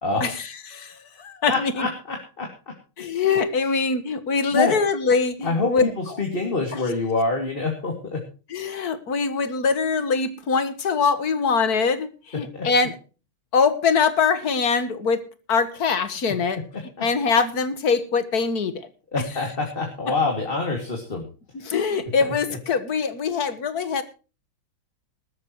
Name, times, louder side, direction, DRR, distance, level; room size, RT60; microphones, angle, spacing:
voice 1, 0.2-1.9 3.0-6.2 6.7-6.8 8.5-13.0 13.5-18.9 21.5-24.0, left 5 dB, 50° left, 13 dB, 1.9 m, -23 dB
voice 2, 1.4-2.5 4.5-4.7 5.4-8.2 12.5-12.7 19.1-21.2, left 3 dB, 25° left, 2 dB, 2.6 m, -25 dB
20.0 x 13.0 x 3.0 m, 0.34 s
omnidirectional pair, 2.2 m